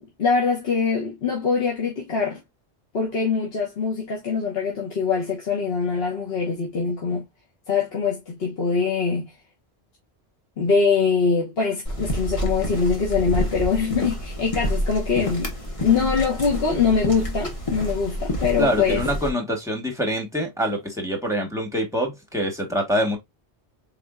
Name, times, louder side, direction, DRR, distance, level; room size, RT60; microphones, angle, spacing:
voice 1, 0.0-2.4 2.9-7.2 7.7-9.3 10.6-15.6 15.8-19.0, left 5 dB, 65° left, 1.2 m, -23 dB
sound 1, 11.8-19.3, equal, 30° left, 1.1 m, -28 dB
voice 2, 18.6-23.2, equal, 5° right, 1.1 m, -25 dB
4.2 x 3.4 x 2.3 m
omnidirectional pair, 1.1 m